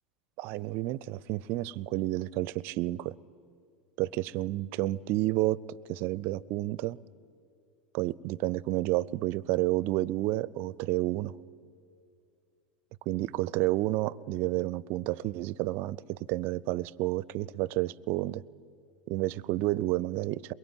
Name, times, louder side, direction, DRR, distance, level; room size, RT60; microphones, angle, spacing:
voice 1, 0.4-3.1 4.0-7.0 7.9-11.3 13.1-18.4 19.1-20.5, right 17 dB, 45° right, 0.5 m, -30 dB
22.5 x 22.0 x 9.0 m
figure-of-eight pair, 80°, 5 cm